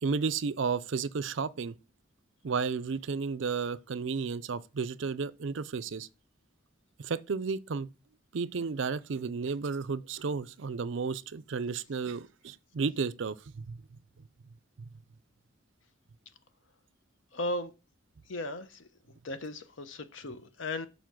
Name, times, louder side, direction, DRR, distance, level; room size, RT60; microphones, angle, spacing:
voice 1, 0.0-1.8 2.4-6.1 7.0-7.9 8.3-13.8 14.8-14.9, right 5 dB, 70° right, 0.5 m, -33 dB
voice 2, 17.3-17.7 18.3-18.9 19.2-20.9, left 1 dB, 75° left, 0.9 m, -36 dB
7.1 x 4.5 x 6.1 m
head